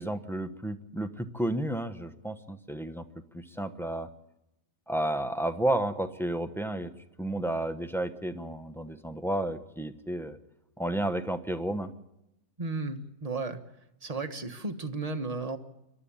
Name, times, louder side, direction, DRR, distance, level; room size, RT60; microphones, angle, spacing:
voice 1, 0.0-3.0 3.3-4.1 4.9-6.9 7.2-10.4 10.8-11.9, right 1 dB, ahead, 8 dB, 0.8 m, -32 dB
voice 2, 12.6-13.6 14.0-15.6, right 3 dB, 25° right, 7 dB, 1.3 m, -34 dB
27.0 x 12.5 x 8.6 m, 0.90 s
omnidirectional pair, 1.5 m